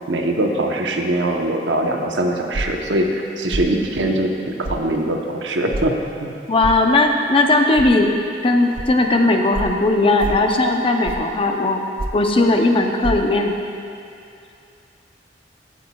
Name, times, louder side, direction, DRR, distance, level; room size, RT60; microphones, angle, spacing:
voice 1, 0.1-6.3, right 1 dB, 85° right, 2 dB, 0.9 m, -22 dB
sound 1, 2.5-2.8 3.5-3.7 4.6-4.8 5.7-5.9 6.6-6.8 7.8-7.9 8.7-8.9 9.5-9.7 10.2-10.5 11.0-11.3 12.0-12.3 13.0-13.1, right 2 dB, 50° right, 0.5 m, -26 dB
voice 2, 6.5-8.1 8.4-11.8 12.1-13.6, left 2 dB, 30° left, 3 dB, 0.6 m, -17 dB
15.5 x 8.5 x 2.3 m, 2.6 s
head